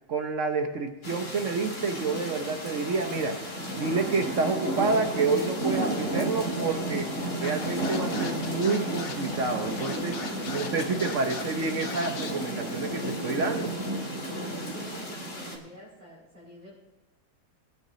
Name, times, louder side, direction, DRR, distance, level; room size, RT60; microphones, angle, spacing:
voice 1, 0.1-3.4 3.7-13.8, right 4 dB, 50° right, 5 dB, 0.9 m, -29 dB
sound 1, 1.0-15.6, right 1 dB, 35° left, 2.4 m, -32 dB
Scratching (performance technique), 7.4-12.3, left 5 dB, 65° left, 1.8 m, -39 dB
voice 2, 14.2-16.8, equal, 75° right, -10 dB, 5.9 m, -49 dB
20.5 x 9.5 x 3.1 m, 1.1 s
omnidirectional pair, 2.2 m